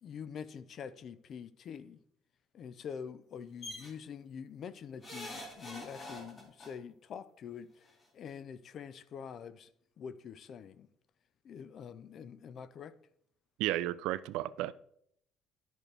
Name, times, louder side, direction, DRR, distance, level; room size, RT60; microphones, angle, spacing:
voice 1, 0.0-2.0 2.5-7.9 8.1-9.7 10.0-10.9 11.4-13.0, left 7 dB, 45° left, 0.4 m, -45 dB
sound 1, 3.6-3.9 5.0-6.7 7.9-8.0 8.3-8.4, left 1 dB, 25° left, 2.1 m, -44 dB
voice 2, 13.6-14.7, right 15 dB, 85° right, 0.4 m, -33 dB
11.0 x 6.0 x 3.3 m
cardioid pair, 145°, 0 cm